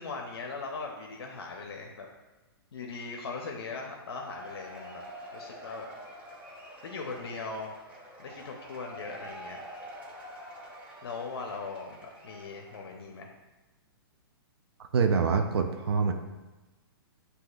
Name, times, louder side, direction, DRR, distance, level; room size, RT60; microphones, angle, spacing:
voice 1, 0.0-2.1 2.7-5.0 5.3-5.9 6.8-7.7 8.2-9.6 11.0-13.3, left 4 dB, 80° left, 1 dB, 0.7 m, -39 dB
Cheering / Applause / Crowd, 4.1-13.0, equal, 10° right, 1.1 m, -47 dB
voice 2, 14.9-16.1, right 5 dB, 80° right, 5 dB, 0.5 m, -25 dB
7.7 x 2.8 x 2.4 m, 1.1 s
hypercardioid pair, 140°, 13 cm